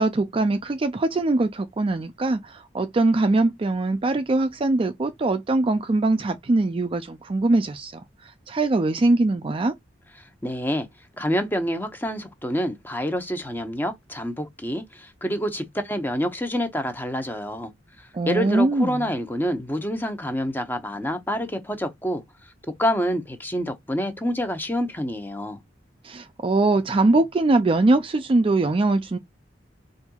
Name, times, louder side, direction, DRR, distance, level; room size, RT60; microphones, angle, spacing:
voice 1, 0.0-9.7 18.1-19.2 26.0-29.2, right 2 dB, 30° right, 0.4 m, -22 dB
voice 2, 10.4-10.9 11.2-17.7 18.0-22.2 22.8-25.6, equal, 10° left, 0.8 m, -27 dB
4.3 x 2.6 x 2.3 m
head